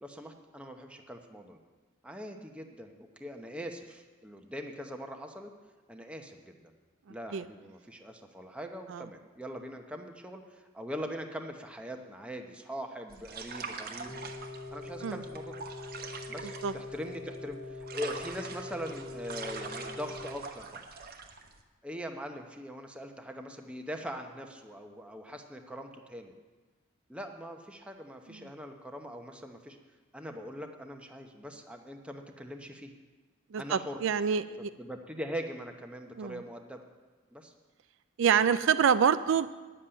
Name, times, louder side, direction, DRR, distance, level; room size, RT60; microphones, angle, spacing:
voice 1, 0.0-1.6 2.0-5.5 5.9-6.7 7.1-14.2 14.7-15.6 16.3-20.8 21.8-26.3 27.1-29.8 30.1-32.9 33.6-34.0 34.6-36.8 37.3-37.5, equal, 5° right, 3 dB, 0.9 m, -42 dB
sound 1, 13.1-21.6, right 4 dB, 45° right, 1.0 m, -43 dB
sound 2, 14.1-20.3, left 3 dB, 55° left, 1.8 m, -43 dB
voice 2, 33.5-34.7 36.2-36.4 38.2-39.5, right 7 dB, 65° right, 12 dB, 0.4 m, -26 dB
10.0 x 7.4 x 8.8 m, 1.3 s
head